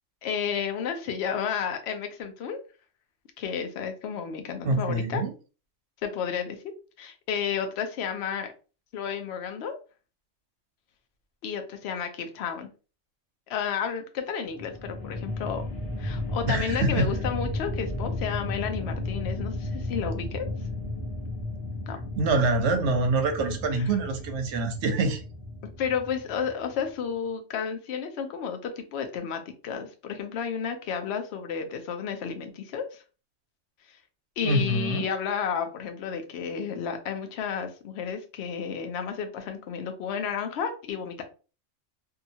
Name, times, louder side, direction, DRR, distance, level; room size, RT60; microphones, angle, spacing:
voice 1, 0.2-2.6 3.4-5.2 6.0-6.6 7.0-8.5 8.9-9.8 11.4-12.7 13.5-15.6 16.0-20.5 21.9-22.0 23.7-23.8 25.8-33.0 34.4-41.2, left 7 dB, 65° left, 0.8 m, -32 dB
voice 2, 4.6-5.3 16.4-17.1 22.2-25.2 34.4-35.1, right 2 dB, 75° right, 0.9 m, -25 dB
sound 1, 14.5-26.8, left 2 dB, 30° left, 0.7 m, -34 dB
2.7 x 2.4 x 2.6 m
omnidirectional pair, 1.3 m